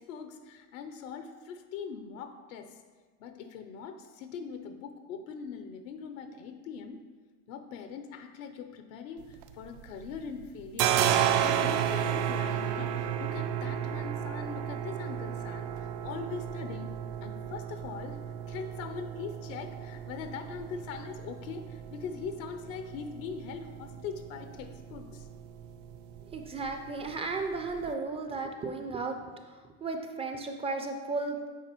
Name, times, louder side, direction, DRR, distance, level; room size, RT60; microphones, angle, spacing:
voice 1, 0.0-2.8 3.2-7.0 7.5-11.0 11.4-16.9 17.2-25.3, left 6 dB, 80° left, 7 dB, 0.6 m, -41 dB
sound 1, 9.2-10.1 10.4-27.9, right 9 dB, 70° right, 0.5 m, -33 dB
voice 2, 26.3-29.2 29.5-29.6 29.8-31.5, right 3 dB, 15° right, 5 dB, 0.3 m, -34 dB
8.2 x 4.1 x 3.0 m, 1.4 s
supercardioid pair, 110°, 40 cm